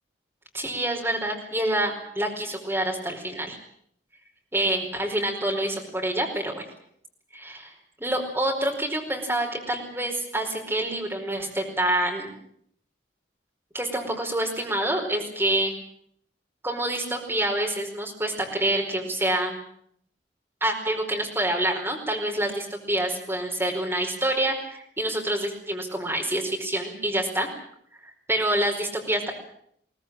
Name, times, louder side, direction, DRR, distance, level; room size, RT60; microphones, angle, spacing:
voice 1, 0.5-3.6 4.5-6.7 7.3-12.3 13.7-15.7 16.6-19.6 20.6-27.5 27.9-28.0 28.3-29.3, right 1 dB, 15° right, 1 dB, 4.8 m, -27 dB
23.0 x 17.5 x 9.0 m, 0.68 s
head